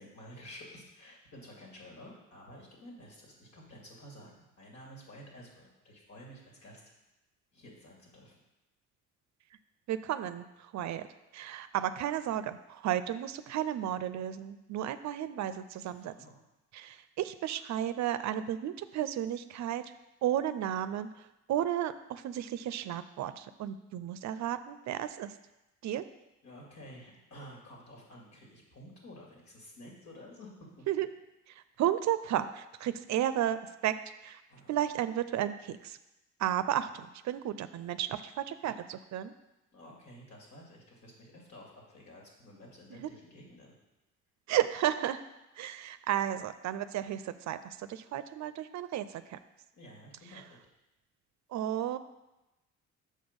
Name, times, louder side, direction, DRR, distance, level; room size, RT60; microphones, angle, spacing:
voice 1, 0.0-6.8 7.5-8.3 15.8-16.3 26.4-30.9 34.5-34.7 39.7-43.7 49.7-50.6, equal, 65° left, -2 dB, 2.5 m, -51 dB
voice 2, 9.9-11.1 11.3-16.1 16.7-19.9 20.2-25.3 25.8-26.0 30.9-31.1 31.5-34.0 34.2-34.4 34.7-36.0 36.4-39.3 42.9-43.1 44.5-45.2 45.6-49.4 50.3-50.4 51.5-52.0, right 11 dB, 65° right, 13 dB, 0.5 m, -33 dB
6.5 x 5.3 x 5.2 m, 0.99 s
cardioid pair, 90°, 30 cm